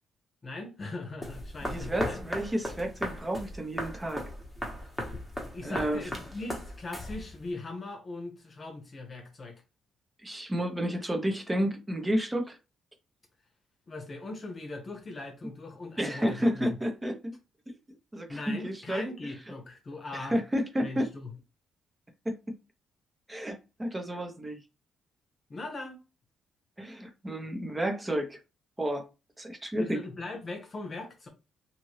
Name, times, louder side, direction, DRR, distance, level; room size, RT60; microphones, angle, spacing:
voice 1, 0.4-2.2 5.5-9.6 13.9-16.7 18.3-20.4 20.8-21.3 25.5-26.0 29.8-31.3, left 2 dB, 35° left, 0.9 m, -40 dB
sound 1, 1.2-7.5, left 1 dB, 5° left, 1.1 m, -37 dB
voice 2, 1.6-4.2 5.6-6.1 10.2-12.6 16.0-17.3 18.1-19.0 20.1-21.1 22.2-22.3 23.3-24.6 26.8-28.4 28.8-29.1 29.4-30.0, equal, 15° right, 0.8 m, -31 dB
2.7 x 2.6 x 3.1 m
cardioid pair, 90°, 0 cm